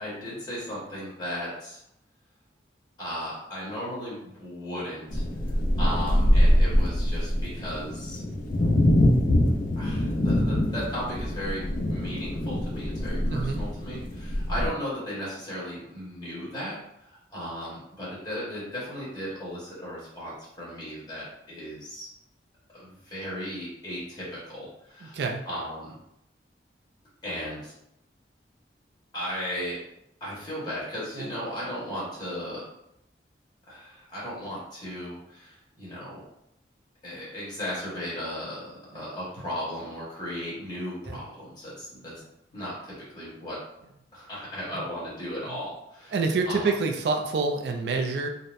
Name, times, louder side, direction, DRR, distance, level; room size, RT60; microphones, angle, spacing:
voice 1, 0.0-1.8 3.0-5.2 5.8-8.2 9.8-22.1 22.7-25.2 25.5-26.0 27.2-27.7 29.1-29.8 30.2-32.6 33.7-36.2 37.0-42.1 42.5-43.6 44.1-46.1 46.5-46.7, equal, 25° left, -8 dB, 1.3 m, -36 dB
sound 1, 5.1-14.7, left 1 dB, 50° left, 0.5 m, -24 dB
voice 2, 13.3-13.6 25.0-25.4 31.1-31.3 38.9-39.1 41.1-41.2 42.1-42.3 44.7-44.8 45.5-45.6 46.1-48.3, right 4 dB, 65° right, 3 dB, 0.3 m, -28 dB
3.9 x 2.1 x 2.5 m, 0.80 s
head